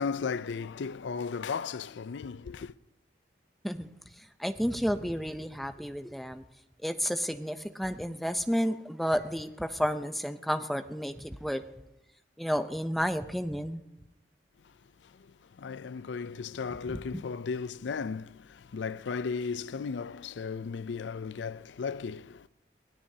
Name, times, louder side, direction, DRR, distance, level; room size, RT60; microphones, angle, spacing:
voice 1, 0.0-2.7 14.6-22.5, left 5 dB, 85° left, 0.4 m, -36 dB
voice 2, 4.2-6.4 6.8-11.6 12.4-13.8 16.9-17.2, equal, ahead, 0.6 m, -31 dB
22.5 x 17.0 x 2.8 m
head